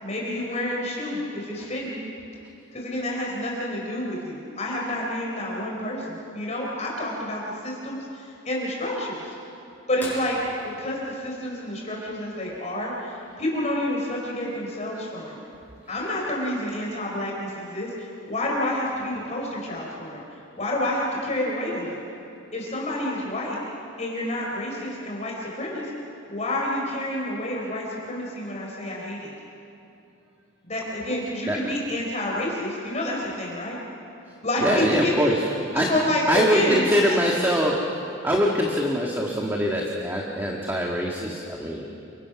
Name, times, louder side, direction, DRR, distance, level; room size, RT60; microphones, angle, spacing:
voice 1, 0.0-2.0 2.7-9.3 9.9-10.4 10.8-15.4 15.9-20.2 20.6-22.0 22.5-23.6 24.0-25.9 26.3-29.3 30.6-33.8 34.4-35.1 35.7-37.2, left 1 dB, 35° left, -3 dB, 4.2 m, -29 dB
sound 1, 10.0-12.5 14.4-14.5 16.7-16.8 18.5-18.8 19.6-19.7, left 1 dB, 10° left, 6.7 m, -42 dB
voice 2, 34.6-35.4 35.7-35.9 36.3-37.9 38.2-41.9, equal, 10° right, -1 dB, 1.7 m, -23 dB
29.5 x 23.5 x 6.1 m, 2.8 s
head